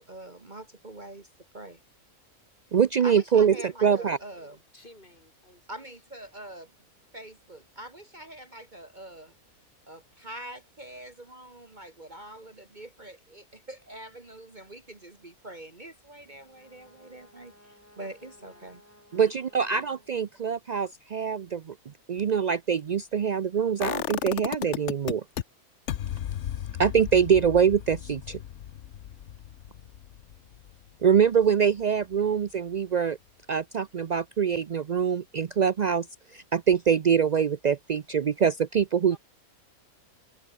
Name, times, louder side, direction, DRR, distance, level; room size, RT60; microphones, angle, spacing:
voice 1, 0.0-1.8 3.0-4.6 5.7-6.7 7.1-9.3 9.9-18.8, right 1 dB, 30° right, 1.9 m, -44 dB
voice 2, 2.7-3.5 3.8-4.2 19.1-21.7 22.1-25.2 26.8-28.4 31.0-33.2 33.5-36.1 36.3-39.2, right 7 dB, 65° right, 0.4 m, -24 dB
voice 3, 4.7-5.9 17.9-18.7 39.1-39.2, left 1 dB, 35° left, 6.9 m, -54 dB
Brass instrument, 16.1-20.5, left 1 dB, 10° left, 3.8 m, -58 dB
sound 1, 23.8-25.4 25.9-31.7 32.0-32.1, left 10 dB, 60° left, 1.0 m, -35 dB
omnidirectional pair, 1.5 m